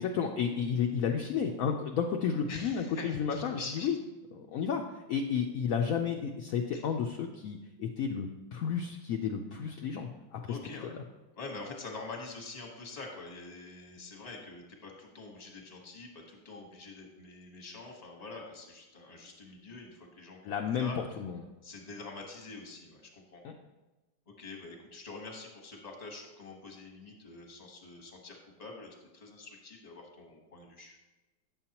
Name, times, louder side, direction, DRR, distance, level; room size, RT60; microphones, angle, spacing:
voice 1, 0.0-4.0 4.3-10.6 10.9-11.0 20.4-21.5 23.4-23.5, left 7 dB, 75° left, 2 dB, 0.8 m, -32 dB
voice 2, 2.5-3.9 6.7-6.8 10.5-10.9 11.3-20.4 20.8-21.0 21.6-23.4 24.3-31.0, left 3 dB, 25° left, 1 dB, 1.0 m, -46 dB
8.8 x 7.1 x 2.9 m, 1.1 s
omnidirectional pair, 2.0 m